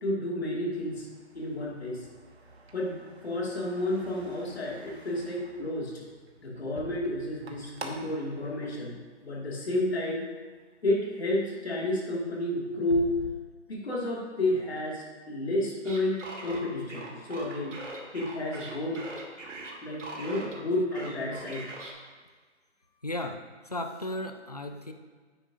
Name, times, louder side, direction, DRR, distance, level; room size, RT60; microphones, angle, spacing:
voice 1, 0.0-1.1 1.3-2.1 2.7-6.0 6.4-10.2 10.8-13.1 13.7-17.8 18.1-19.0 19.8-21.7, left 1 dB, 55° left, -3 dB, 2.3 m, -31 dB
sound 1, 0.7-9.7 10.1-10.6 11.1-11.3 11.6-13.3, right 3 dB, 60° right, 1.1 m, -47 dB
sound 2, 15.8-20.6 20.9-21.9, right 2 dB, 80° right, 1.9 m, -41 dB
voice 2, 23.0-23.4 23.6-24.9, left 1 dB, 35° left, 6 dB, 0.4 m, -35 dB
9.4 x 8.8 x 2.7 m, 1.5 s
hypercardioid pair, 170°, 36 cm